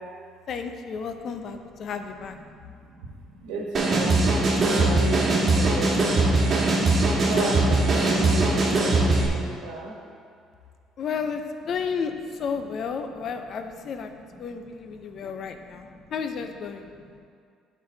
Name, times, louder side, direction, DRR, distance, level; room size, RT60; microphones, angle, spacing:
voice 1, 0.5-2.4 11.0-11.4 11.7-12.1 12.4-14.1 14.4-15.9 16.1-16.9, left 6 dB, 55° left, 7 dB, 0.6 m, -32 dB
voice 2, 2.2-6.5 7.2-9.9 13.2-13.3 14.2-16.1 16.9-17.2, right 2 dB, 85° right, -1 dB, 1.3 m, -35 dB
sound 1, 3.7-9.3, right 2 dB, 45° right, 1.5 m, -21 dB
9.1 x 4.6 x 3.8 m, 2.2 s
supercardioid pair, 80°, 0 cm